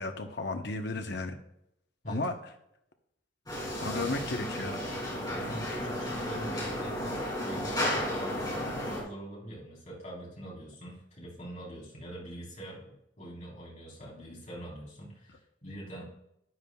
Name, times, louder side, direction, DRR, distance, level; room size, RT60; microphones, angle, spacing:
voice 1, 0.0-1.3 2.1-2.3 3.8-4.8, left 2 dB, 60° left, 6 dB, 1.0 m, -33 dB
sound 1, 3.5-9.0, left 1 dB, 20° left, 3.2 m, -33 dB
voice 2, 3.9-4.2 5.3-16.0, right 1 dB, 40° left, -5 dB, 4.2 m, -44 dB
12.5 x 9.5 x 2.4 m, 0.79 s
head